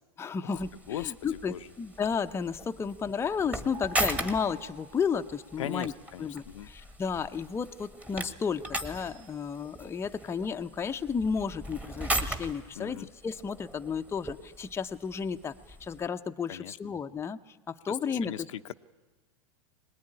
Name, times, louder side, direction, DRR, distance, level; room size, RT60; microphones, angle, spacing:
voice 1, 0.2-5.9 6.2-15.5 15.8-18.5, left 6 dB, 15° left, 7 dB, 0.7 m, -33 dB
sound 1, 0.5-16.1, right 1 dB, 10° right, 1.6 m, -39 dB
voice 2, 0.9-1.7 5.6-6.7 12.8-13.1 16.5-16.8 17.9-18.7, left 11 dB, 80° left, 9 dB, 0.7 m, -39 dB
sound 2, 3.7-6.2, right 4 dB, 40° right, 1.5 m, -49 dB
21.5 x 20.0 x 9.9 m, 1.3 s
hypercardioid pair, 115°, 16 cm